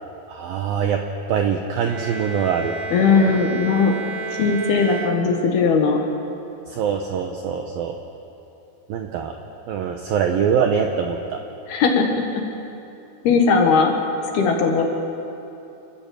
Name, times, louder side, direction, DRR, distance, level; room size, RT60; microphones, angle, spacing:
voice 1, 0.3-1.0 1.3-2.8 6.7-8.0 8.9-9.4 9.7-11.4, right 7 dB, 80° right, 4 dB, 2.1 m, -23 dB
Bowed string instrument, 1.8-5.8, right 3 dB, 60° right, 2.7 m, -32 dB
voice 2, 2.9-3.9 4.4-6.0 11.7-12.4 13.2-14.0 14.3-14.8, left 5 dB, 65° left, 2 dB, 3.3 m, -18 dB
29.0 x 14.0 x 7.6 m, 2.8 s
omnidirectional pair, 5.4 m